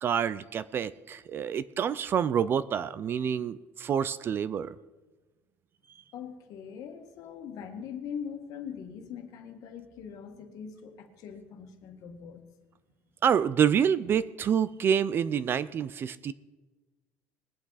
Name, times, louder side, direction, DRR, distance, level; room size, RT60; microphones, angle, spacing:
voice 1, 0.0-4.8 13.2-16.3, right 8 dB, 30° right, 17 dB, 0.4 m, -27 dB
voice 2, 6.1-12.5, left 7 dB, 60° left, 5 dB, 1.7 m, -42 dB
21.0 x 8.6 x 4.0 m, 1.2 s
cardioid pair, 160°, 7 cm